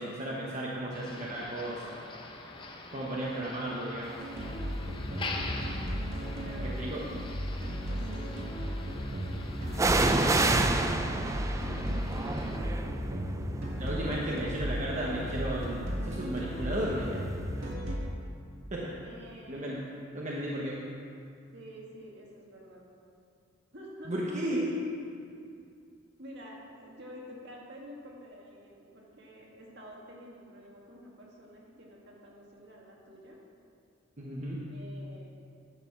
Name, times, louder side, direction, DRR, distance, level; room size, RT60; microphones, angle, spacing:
voice 1, 0.0-2.0 2.9-4.2 6.6-7.0 13.8-17.3 18.7-18.9 19.5-19.8 20.1-20.8 24.1-24.7 34.2-34.6, right 1 dB, 40° right, -4 dB, 1.0 m, -34 dB
Motor vehicle (road), 0.9-12.6, left 2 dB, 25° left, 0.8 m, -43 dB
sound 1, 4.2-17.9, equal, 85° right, 1.9 m, -35 dB
sound 2, 4.8-5.2 5.9-6.8 9.7-17.4 17.7-17.8, right 2 dB, 15° right, 0.4 m, -31 dB
voice 2, 6.4-6.8 7.9-8.5 10.8-11.4 11.7-12.8 14.2-14.5 19.0-19.8 21.5-22.9 23.7-24.1 26.2-33.4 34.7-35.3, equal, 60° right, -3 dB, 2.0 m, -48 dB
10.5 x 6.7 x 5.9 m, 2.4 s
head